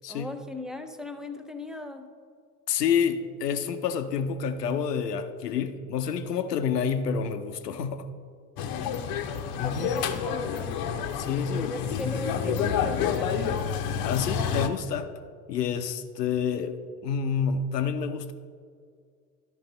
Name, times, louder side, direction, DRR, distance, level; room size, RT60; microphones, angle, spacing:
voice 1, 0.1-2.1 9.6-10.9 11.6-13.5, left 1 dB, ahead, 6 dB, 0.6 m, -37 dB
voice 2, 2.7-8.1 9.6-9.9 11.2-12.1 14.0-15.1 15.5-16.8 17.0-18.3, left 6 dB, 85° left, 9 dB, 0.7 m, -28 dB
sound 1, 8.6-14.7, left 7 dB, 45° left, 0.8 m, -29 dB
12.0 x 5.3 x 3.9 m, 2.2 s
hypercardioid pair, 75°, 47 cm